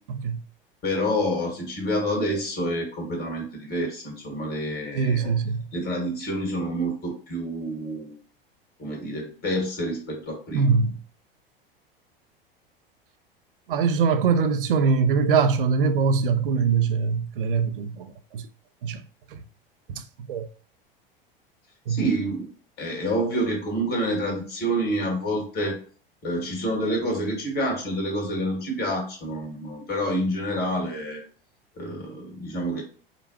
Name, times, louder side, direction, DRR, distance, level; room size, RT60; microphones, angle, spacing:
voice 1, 0.8-5.3 5.7-8.2 8.8-10.7 21.9-22.5 22.8-25.8 26.2-31.2 31.8-32.8, equal, 35° left, 1.8 m, -28 dB
voice 2, 4.9-5.6 10.5-11.0 13.7-18.5 18.8-19.0 19.3-19.4 19.9-20.0 20.3-20.5 21.9-22.0, right 5 dB, 65° right, 0.6 m, -23 dB
5.1 x 2.3 x 2.8 m
figure-of-eight pair, 80°, 29 cm